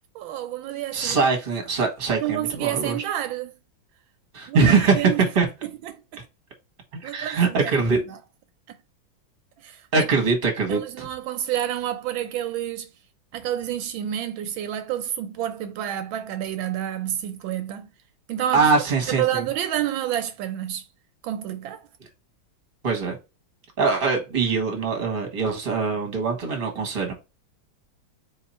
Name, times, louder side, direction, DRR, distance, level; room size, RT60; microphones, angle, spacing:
voice 1, 0.1-1.2 2.2-3.5 4.5-5.2 5.6-6.0 7.0-8.2 8.7-8.8 9.6-10.0 10.7-12.9 13.3-17.9 18.3-18.7 19.1-20.8 21.2-21.8, right 11 dB, 80° right, 1.3 m, -29 dB
voice 2, 0.9-3.0 4.3-5.5 6.9-8.0 9.9-11.1 18.5-19.4 22.8-23.2 23.8-27.1, right 4 dB, 30° right, 1.3 m, -22 dB
4.1 x 2.9 x 4.1 m
omnidirectional pair, 2.2 m